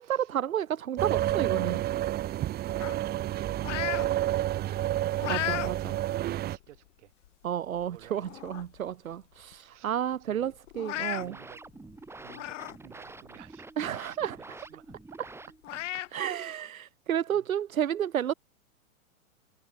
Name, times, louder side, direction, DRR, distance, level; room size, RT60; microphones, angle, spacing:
voice 1, 0.0-1.8 5.3-6.0 7.4-11.4 13.8-14.6 15.9-18.3, right 10 dB, 75° right, 3.2 m, -31 dB
sound 1, 1.0-6.6, right 13 dB, 20° right, 1.3 m, -30 dB
voice 2, 2.6-5.7 6.0-7.1 7.8-8.3 9.7-9.9 10.2-10.5 11.2-11.6 12.2-14.0 14.3-15.0 16.3-16.6 17.3-17.5, right 15 dB, 55° right, 7.1 m, -53 dB
sound 2, 2.8-4.1 4.5-5.7 6.2-6.4 7.2-7.3 7.8-7.9 8.2-8.8 9.1-9.2 9.5-9.6 10.7-11.2 12.3-12.8 13.2-13.3 14.9-15.0 15.6-16.1, left 14 dB, 60° left, 1.2 m, -35 dB
sound 3, 11.0-15.9, right 3 dB, 5° right, 2.5 m, -48 dB
hypercardioid pair, 125°, 42 cm